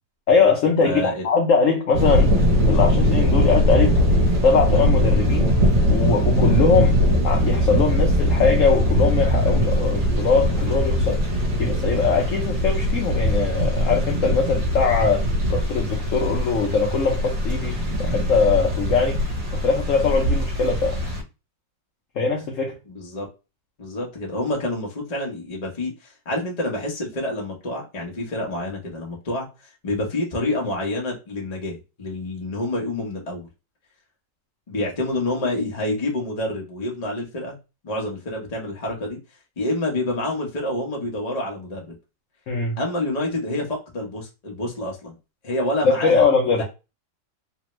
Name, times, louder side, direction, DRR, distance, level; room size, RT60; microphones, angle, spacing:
voice 1, 0.3-2.4 2.7-4.0 4.4-5.5 5.9-7.0 7.2-11.2 11.6-19.3 19.5-21.0 22.2-22.7 42.5-42.8 45.8-46.6, left 4 dB, 65° left, 0.8 m, -21 dB
voice 2, 0.8-1.3 22.9-23.3 23.8-33.5 34.7-37.6 37.8-39.2 39.6-42.0 42.8-45.1 45.4-46.6, left 1 dB, 30° left, 0.7 m, -28 dB
sound 1, 1.9-21.2, equal, 65° right, 1.4 m, -21 dB
3.3 x 2.1 x 3.0 m
omnidirectional pair, 2.0 m